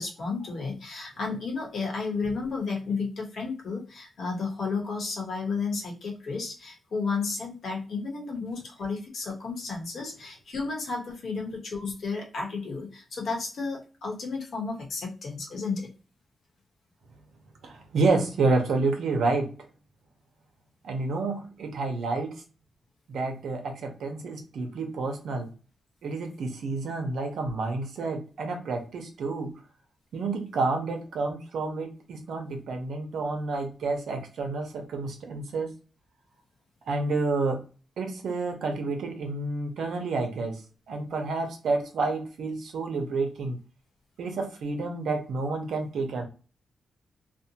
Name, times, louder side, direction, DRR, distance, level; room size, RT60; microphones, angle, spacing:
voice 1, 0.0-15.9, left 4 dB, 65° left, 0 dB, 1.0 m, -32 dB
voice 2, 17.6-19.5 20.8-22.4 23.1-25.5 26.0-29.6 30.1-35.7 36.9-37.6 38.0-40.6 40.9-43.6 44.2-46.3, right 3 dB, 80° right, 3 dB, 0.7 m, -29 dB
2.6 x 2.1 x 2.8 m, 0.35 s
cardioid pair, 100°, 0 cm